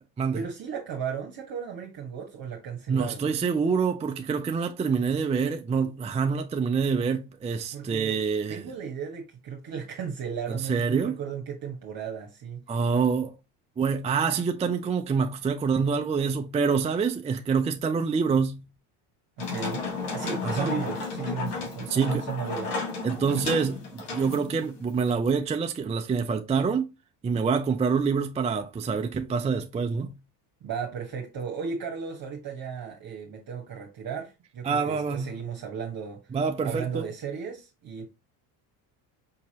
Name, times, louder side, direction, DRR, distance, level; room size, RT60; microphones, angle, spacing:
voice 1, 0.3-3.3 7.7-8.2 8.5-12.6 19.4-19.8 20.1-22.8 30.6-36.2 36.6-38.0, right 6 dB, 45° right, 1.3 m, -35 dB
voice 2, 2.9-8.6 10.5-11.2 12.7-13.3 13.8-18.6 20.6-20.8 21.9-22.2 23.0-26.9 27.2-30.2 34.6-35.3 36.3-37.0, right 5 dB, 15° right, 0.4 m, -26 dB
sound 1, 19.4-25.1, left 4 dB, 90° left, 1.9 m, -33 dB
5.6 x 2.9 x 2.8 m
supercardioid pair, 90°, 48 cm